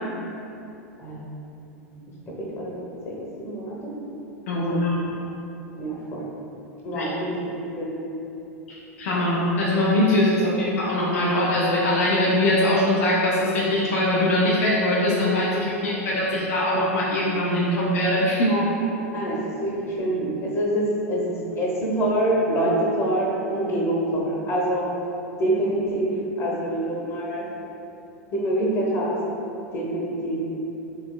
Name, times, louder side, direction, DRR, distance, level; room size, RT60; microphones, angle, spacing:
voice 1, 1.0-1.3 2.4-3.9 4.5-4.8 5.8-6.3 6.8-8.0 15.2-15.4 15.7-16.1 18.4-18.7 19.0-25.0 25.4-26.1 26.4-27.5 28.3-29.1 29.7-30.4, right 1 dB, 30° left, -4 dB, 0.9 m, -26 dB
voice 2, 4.5-5.1 6.9-7.1 8.7-18.6, left 1 dB, 65° left, -6 dB, 0.5 m, -22 dB
3.5 x 3.1 x 2.2 m, 2.9 s
figure-of-eight pair, 90°, 8 cm